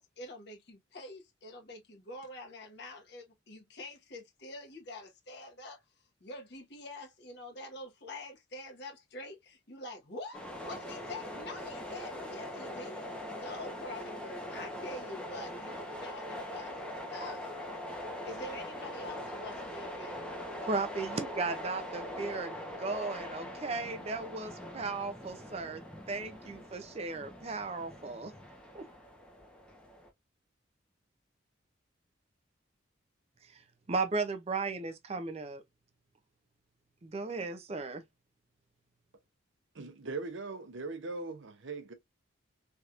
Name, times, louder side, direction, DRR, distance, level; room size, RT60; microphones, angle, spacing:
voice 1, 0.0-5.8 6.2-16.7 17.1-17.5 18.2-20.2, left 2 dB, 55° left, 1.1 m, -46 dB
sound 1, 10.3-30.1, equal, 5° left, 0.7 m, -42 dB
voice 2, 20.6-25.8 26.1-28.3 28.7-28.9 33.5-33.6 33.9-35.6 37.0-38.0, right 3 dB, 30° right, 0.4 m, -36 dB
voice 3, 39.7-41.9, right 3 dB, 70° right, 0.7 m, -40 dB
3.3 x 2.9 x 2.4 m
head